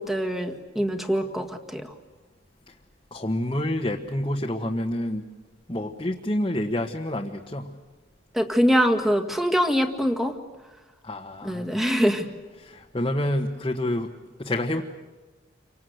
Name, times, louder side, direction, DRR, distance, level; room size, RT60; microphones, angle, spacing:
voice 1, 0.0-1.9 8.3-10.3 11.4-12.3, equal, ahead, 4 dB, 1.9 m, -23 dB
voice 2, 3.1-5.2 5.7-7.7 11.0-11.8 12.6-14.1 14.4-14.8, left 1 dB, 25° left, 0 dB, 1.4 m, -28 dB
29.0 x 25.0 x 8.0 m, 1.2 s
head